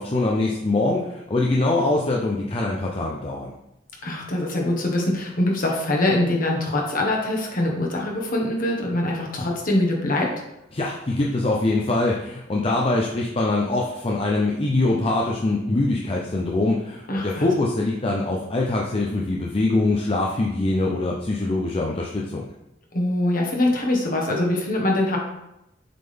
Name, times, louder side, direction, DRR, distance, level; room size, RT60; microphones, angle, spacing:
voice 1, 0.0-3.5 10.7-22.5, left 2 dB, 30° left, -2 dB, 0.6 m, -23 dB
voice 2, 4.0-10.3 17.1-17.5 22.9-25.2, left 1 dB, 45° left, -1 dB, 1.3 m, -23 dB
7.6 x 3.7 x 3.5 m, 0.88 s
head